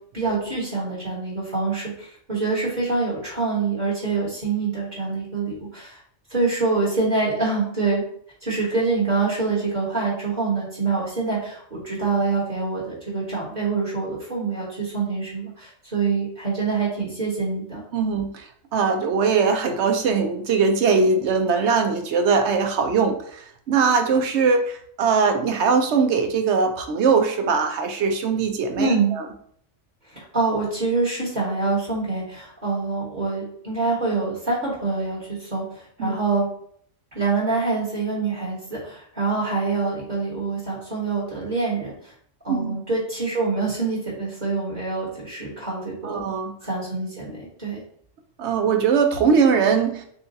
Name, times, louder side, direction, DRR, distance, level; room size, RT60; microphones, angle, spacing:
voice 1, 0.1-6.0 6.3-8.0 8.4-17.8 28.8-29.1 30.0-36.5 37.1-42.1 42.4-46.2 46.6-47.8, right 4 dB, 35° right, -6 dB, 1.5 m, -25 dB
voice 2, 17.9-29.3 36.0-36.1 42.5-42.7 46.0-46.5 48.4-50.0, right 5 dB, 70° right, 5 dB, 0.8 m, -21 dB
6.9 x 2.3 x 2.7 m, 0.63 s
omnidirectional pair, 1.3 m